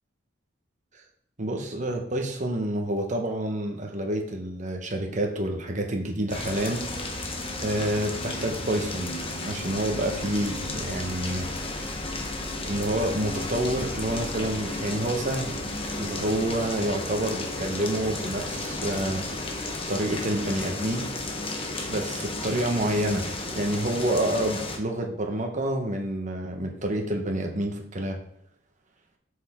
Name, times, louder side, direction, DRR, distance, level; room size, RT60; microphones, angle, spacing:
voice 1, 1.4-6.8 7.6-9.2 9.4-11.5 12.6-15.6 15.9-19.2 19.9-21.1 21.9-28.2, right 1 dB, 40° right, 2 dB, 1.2 m, -28 dB
sound 1, 6.3-24.8, left 2 dB, 30° left, 1.2 m, -33 dB
8.9 x 6.7 x 3.7 m, 0.67 s
head